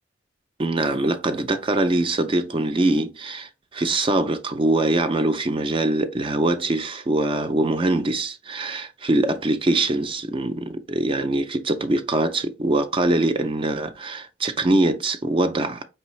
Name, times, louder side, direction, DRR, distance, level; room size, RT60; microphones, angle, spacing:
voice 1, 0.6-15.8, right 2 dB, 30° right, 0.4 m, -23 dB
4.6 x 3.3 x 3.1 m
head